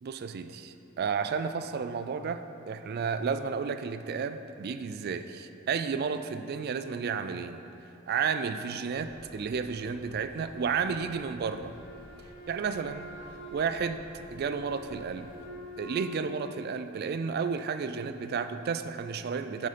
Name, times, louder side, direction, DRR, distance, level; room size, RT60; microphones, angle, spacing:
voice 1, 0.0-7.6 8.1-11.7 12.5-13.1 13.5-14.0 14.3-15.3 15.8-19.7, right 5 dB, 50° right, 10 dB, 0.3 m, -32 dB
sound 1, 8.9-15.5, right 1 dB, 30° right, 1.5 m, -54 dB
Wind instrument woodwind instrument, 11.6-16.6, left 2 dB, 65° left, 1.7 m, -46 dB
9.5 x 3.9 x 5.0 m, 2.8 s
head